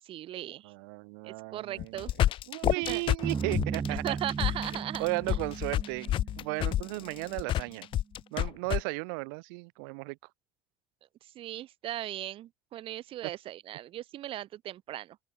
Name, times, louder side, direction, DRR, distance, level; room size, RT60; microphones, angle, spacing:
voice 1, 0.0-0.7 1.2-2.1 2.9-3.0 4.0-5.4 11.3-15.2, right 13 dB, 55° right, 6.4 m, -38 dB
voice 2, 0.6-2.1 2.5-4.2 4.7-7.9 8.3-10.2, right 33 dB, 75° right, 1.6 m, -35 dB
sound 1, 1.8-8.8, left 12 dB, 50° left, 1.1 m, -29 dB
sound 2, 3.2-7.6, right 5 dB, 25° right, 1.1 m, -37 dB
open air
hypercardioid pair, 80°, 11 cm